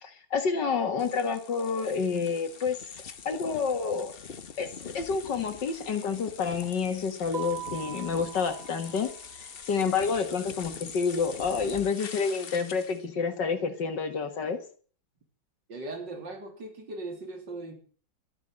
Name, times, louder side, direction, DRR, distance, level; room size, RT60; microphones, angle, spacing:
voice 1, 0.0-4.2 4.6-14.6, left 5 dB, 65° left, 8 dB, 2.3 m, -29 dB
sound 1, 1.0-13.0, left 6 dB, 45° left, 0.8 m, -44 dB
Mallet percussion, 7.3-9.4, right 12 dB, 30° right, 3.6 m, -41 dB
voice 2, 15.7-17.7, right 2 dB, 65° right, 5 dB, 3.6 m, -39 dB
12.5 x 11.0 x 7.6 m, 0.43 s
omnidirectional pair, 2.1 m